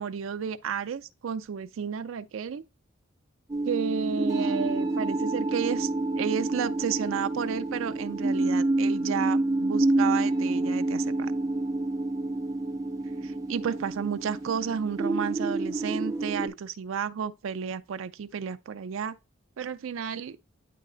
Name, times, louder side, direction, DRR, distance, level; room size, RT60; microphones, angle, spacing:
voice 1, 0.0-2.6 3.6-5.9 6.2-11.3 13.2-19.2 19.6-20.4, right 7 dB, 80° right, 0.4 m, -32 dB
sound 1, 3.5-16.5, right 2 dB, 15° right, 0.6 m, -28 dB
9.3 x 3.2 x 3.8 m
head